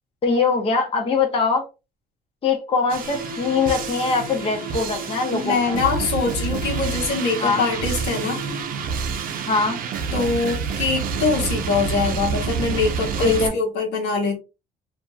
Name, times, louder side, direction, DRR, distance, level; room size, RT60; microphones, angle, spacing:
voice 1, 0.2-1.7 2.4-5.8 7.4-7.6 9.5-9.8 13.2-13.5, left 4 dB, 35° left, 0.8 m, -22 dB
sound 1, 2.9-13.5, right 6 dB, 55° right, 0.6 m, -28 dB
sound 2, 3.0-9.0, equal, 65° left, 1.4 m, -36 dB
voice 2, 5.3-8.4 10.1-14.4, left 4 dB, 80° left, 1.1 m, -23 dB
2.8 x 2.6 x 2.3 m
cardioid pair, 110°, 17 cm